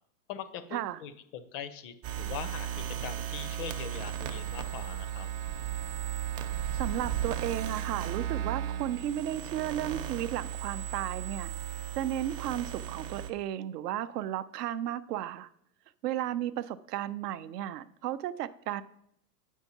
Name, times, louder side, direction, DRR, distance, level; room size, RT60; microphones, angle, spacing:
voice 1, 0.3-5.3, left 8 dB, 35° left, 12 dB, 0.4 m, -42 dB
sound 1, 2.0-13.3, right 10 dB, 35° right, 0.7 m, -35 dB
voice 2, 6.7-11.5 12.0-15.5 16.0-18.8, right 12 dB, 75° right, 15 dB, 0.5 m, -34 dB
8.1 x 4.5 x 2.8 m, 0.71 s
hypercardioid pair, 125°, 48 cm